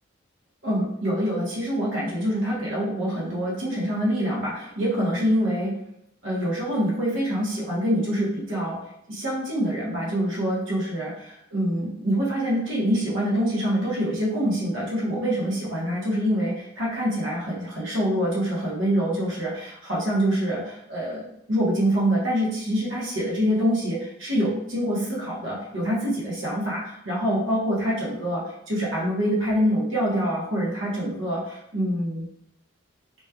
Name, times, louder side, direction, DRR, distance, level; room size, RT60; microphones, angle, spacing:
voice 1, 0.6-5.7 6.2-8.8 9.1-32.3, equal, 65° right, -6 dB, 1.2 m, -25 dB
3.1 x 3.0 x 2.3 m, 0.76 s
head